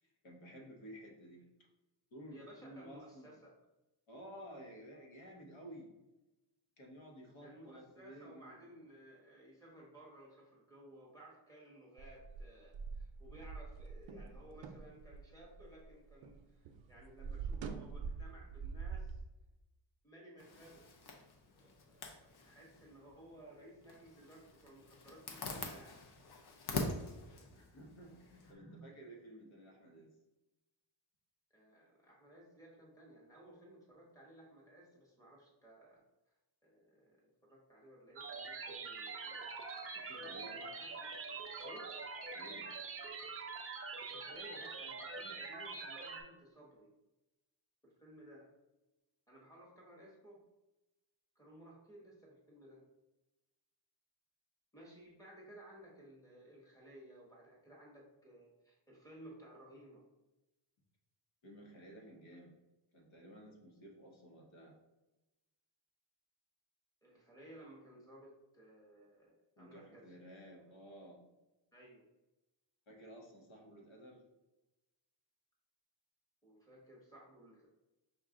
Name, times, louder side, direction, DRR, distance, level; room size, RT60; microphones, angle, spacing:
voice 1, 0.0-1.4 2.1-3.3 4.1-5.9 6.8-8.8 27.5-30.1 39.9-40.6 42.3-42.7 61.4-62.5 62.9-64.8 69.6-71.2 72.9-74.2, equal, 75° left, 0 dB, 1.2 m, -54 dB
voice 2, 2.3-3.5 7.4-19.2 20.0-20.9 21.5-26.0 27.3-27.5 28.4-28.9 31.5-36.0 36.6-39.5 40.1-41.4 41.6-41.9 43.3-43.6 44.0-46.9 47.8-48.5 49.3-50.4 51.3-52.8 54.7-60.0 67.0-70.1 71.7-72.0 76.4-77.7, right 1 dB, 5° left, -4 dB, 1.0 m, -57 dB
sound 1, 12.0-16.4 16.7-19.2, right 5 dB, 75° right, 0.6 m, -45 dB
Zipper (clothing), 20.4-28.5, left 3 dB, 55° left, 0.7 m, -45 dB
sound 2, 38.2-46.2, right 4 dB, 30° right, 0.4 m, -44 dB
5.4 x 2.3 x 3.6 m, 1.0 s
wide cardioid pair, 175°, 47 cm